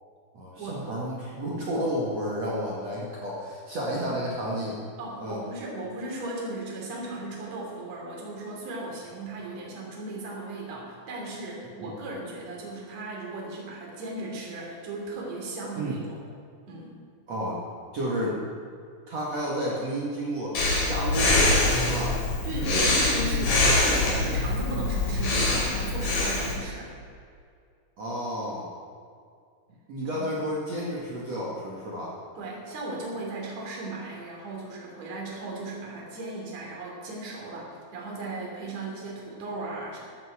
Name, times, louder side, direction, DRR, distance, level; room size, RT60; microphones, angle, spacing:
voice 1, 0.3-4.8 5.2-5.4 11.8-11.9 15.8-16.0 17.3-17.6 17.9-18.6 19.1-20.6 20.9-22.2 22.5-24.1 28.0-28.7 29.9-32.1, equal, 55° right, -5 dB, 1.8 m, -31 dB
voice 2, 5.0-16.2 16.7-17.0 22.4-27.0 30.1-30.3 32.4-40.0, right 2 dB, 40° right, -3 dB, 3.7 m, -36 dB
Breathing, 20.5-26.5, left 2 dB, 45° left, 4.3 m, -24 dB
14.0 x 12.5 x 4.9 m, 2.3 s
omnidirectional pair, 5.9 m